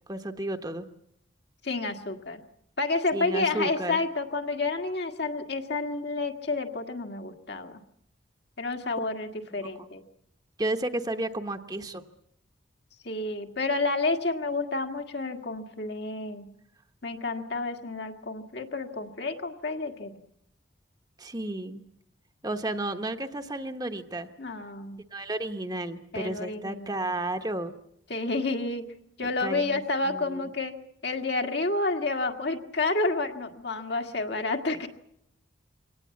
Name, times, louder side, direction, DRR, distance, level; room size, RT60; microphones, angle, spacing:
voice 1, 0.1-0.9 3.1-4.0 9.8-9.9 10.6-12.0 21.2-21.8 22.4-24.3 25.1-27.7 29.4-30.5, right 1 dB, 20° right, 6 dB, 1.1 m, -32 dB
voice 2, 1.6-2.4 2.8-7.8 8.6-10.0 13.1-16.5 17.0-20.2 24.4-25.0 26.1-27.1 28.1-28.8 29.2-30.8 31.0-34.9, left 3 dB, 60° left, 4 dB, 1.8 m, -30 dB
23.5 x 18.0 x 8.4 m, 0.76 s
head